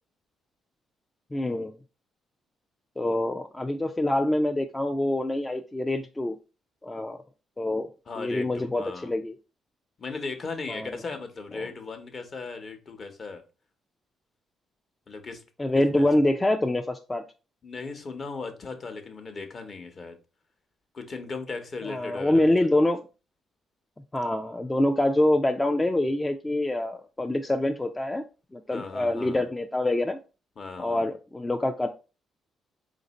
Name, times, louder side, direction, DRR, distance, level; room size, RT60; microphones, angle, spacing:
voice 1, 1.3-1.7 3.0-6.4 6.8-7.2 7.6-7.9 8.2-9.4 10.7-10.9 11.5-11.7 15.6-17.2 21.8-23.0 24.1-28.2 28.5-30.2 30.8-31.9, left 1 dB, 15° left, 0.4 m, -25 dB
voice 2, 8.1-9.1 10.0-13.4 15.1-15.4 15.7-16.1 17.6-20.2 20.9-22.4 28.7-29.4 30.6-31.1, left 4 dB, 45° left, 0.9 m, -37 dB
4.2 x 2.6 x 4.0 m
cardioid pair, 90°, 0 cm